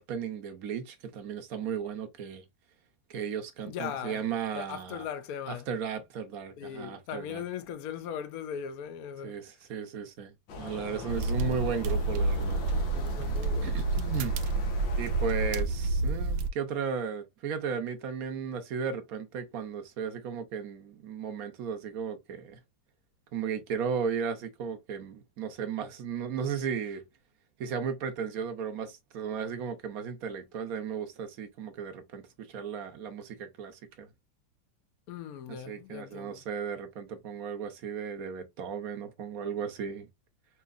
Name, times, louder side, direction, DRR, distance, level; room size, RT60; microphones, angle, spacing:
voice 1, 0.0-2.4 3.1-5.0 5.5-7.4 9.2-12.6 13.6-14.4 15.0-22.6 23.3-27.0 27.6-34.1 35.5-40.1, right 7 dB, 60° right, 1.1 m, -35 dB
voice 2, 3.6-4.2 4.5-5.7 6.6-9.4 12.9-13.8 35.1-36.4, left 8 dB, 60° left, 1.0 m, -39 dB
sound 1, 10.5-15.6, left 5 dB, 90° left, 1.8 m, -43 dB
sound 2, 11.1-16.5, right 2 dB, 90° right, 1.4 m, -29 dB
5.6 x 3.0 x 2.4 m
omnidirectional pair, 2.0 m